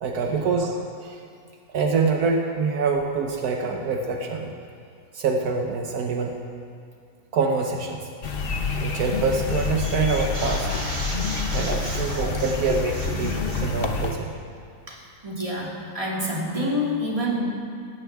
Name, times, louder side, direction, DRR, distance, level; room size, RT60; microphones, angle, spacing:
voice 1, 0.0-1.2 1.7-4.5 5.1-6.3 7.3-8.1 8.8-10.7 11.5-14.3, right 4 dB, 75° right, 2 dB, 1.5 m, -25 dB
sound 1, 8.2-14.1, left 4 dB, 45° left, 1.0 m, -27 dB
sound 2, 8.9-9.2 9.5-13.7, right 1 dB, 55° right, 2.7 m, -36 dB
voice 2, 15.2-17.4, equal, 20° right, -4 dB, 2.7 m, -27 dB
18.5 x 15.5 x 3.6 m, 2.3 s
omnidirectional pair, 1.6 m